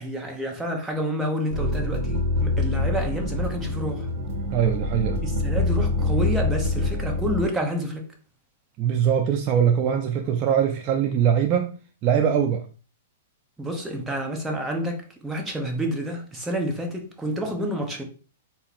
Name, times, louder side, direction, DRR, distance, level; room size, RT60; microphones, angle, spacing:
voice 1, 0.0-4.1 5.2-8.1 13.6-18.0, equal, 5° right, 0.9 m, -29 dB
sound 1, 1.5-7.4, left 2 dB, 50° right, 1.2 m, -25 dB
voice 2, 4.5-5.2 8.8-11.8 12.0-12.7, right 8 dB, 35° right, 0.4 m, -22 dB
4.0 x 2.8 x 4.1 m
hypercardioid pair, 145°, 0 cm